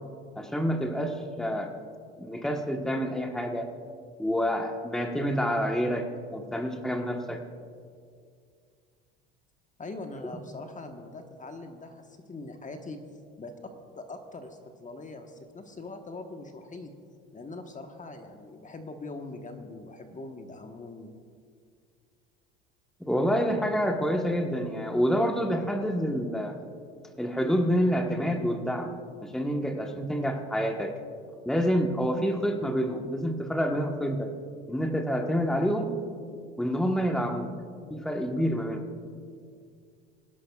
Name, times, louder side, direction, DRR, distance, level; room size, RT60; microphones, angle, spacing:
voice 1, 0.3-1.7 2.2-3.7 4.2-7.4 23.0-26.6 27.2-28.9 29.2-30.9 31.4-34.3 34.7-35.9 36.6-37.5 37.9-38.8, equal, ahead, 3 dB, 1.2 m, -28 dB
voice 2, 9.8-13.0 13.4-16.9 17.3-21.1, left 2 dB, 25° left, 5 dB, 1.3 m, -42 dB
25.5 x 11.0 x 2.4 m, 2.2 s
hypercardioid pair, 70°, 31 cm